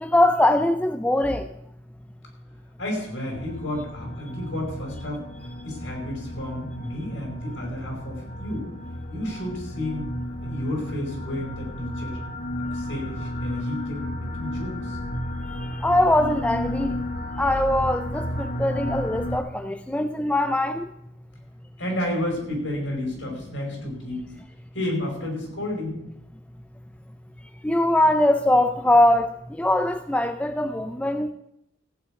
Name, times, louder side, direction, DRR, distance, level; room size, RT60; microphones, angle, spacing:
voice 1, 0.0-1.4 15.8-17.0 17.4-20.9 27.6-29.3 29.6-31.3, left 1 dB, 5° left, 0.4 m, -21 dB
voice 2, 2.8-5.3 5.6-8.7 9.1-10.1 10.4-12.2 12.7-15.0 21.8-24.3 24.7-26.0, left 1 dB, 80° left, 5.3 m, -31 dB
sound 1, 3.3-19.4, left 1 dB, 45° left, 1.1 m, -33 dB
15.0 x 6.0 x 8.8 m
head